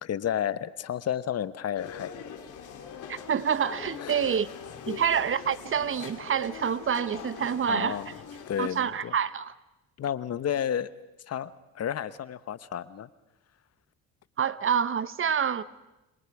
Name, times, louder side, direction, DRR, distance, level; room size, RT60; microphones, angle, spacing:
voice 1, 0.0-2.2 4.0-4.2 7.7-8.1 8.5-9.1 10.0-10.9 11.3-13.1, left 9 dB, 50° left, 1.1 m, -31 dB
sound 1, 1.8-8.8, left 8 dB, 70° left, 3.3 m, -42 dB
voice 2, 3.1-4.5 4.9-8.0 8.6-9.5 14.4-15.6, right 7 dB, 40° right, 1.0 m, -27 dB
27.0 x 26.0 x 4.9 m
supercardioid pair, 75°, 31 cm